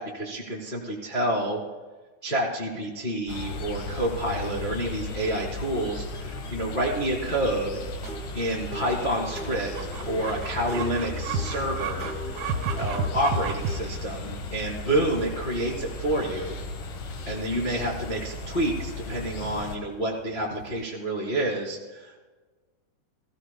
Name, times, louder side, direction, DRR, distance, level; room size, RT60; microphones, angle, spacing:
voice 1, 0.0-1.6 2.2-7.8 8.3-12.1 12.4-16.6 17.2-22.2, right 1 dB, 50° left, -3 dB, 0.5 m, -29 dB
sound 1, 3.3-19.8, left 2 dB, 75° left, 3.5 m, -36 dB
sound 2, 7.4-13.8, right 2 dB, 40° right, 1.7 m, -34 dB
Chicken rooster, 9.7-20.8, right 9 dB, 75° right, 2.2 m, -40 dB
22.0 x 15.0 x 2.3 m, 1.3 s
omnidirectional pair, 4.7 m